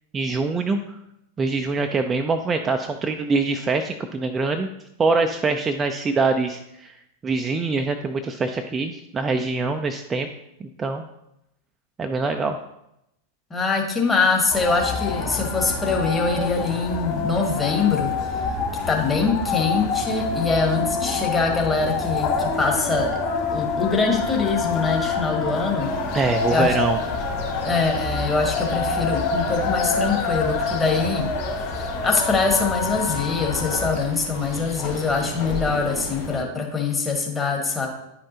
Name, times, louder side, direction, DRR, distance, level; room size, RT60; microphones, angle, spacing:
voice 1, 0.1-1.0 1.4-4.7 5.0-7.0 7.2-10.3 10.6-11.0 12.0-12.6 26.1-27.0, right 3 dB, 20° right, 6 dB, 0.4 m, -24 dB
voice 2, 13.5-18.1 18.9-23.1 23.5-25.9 26.5-26.7 27.6-31.3 31.7-37.9, left 4 dB, 15° left, 0 dB, 1.5 m, -23 dB
sound 1, 14.5-33.9, left 4 dB, 40° left, 1.8 m, -27 dB
sound 2, 25.8-36.4, left 3 dB, 55° left, 2.4 m, -35 dB
10.5 x 5.3 x 2.8 m, 0.83 s
figure-of-eight pair, 90°, 0 cm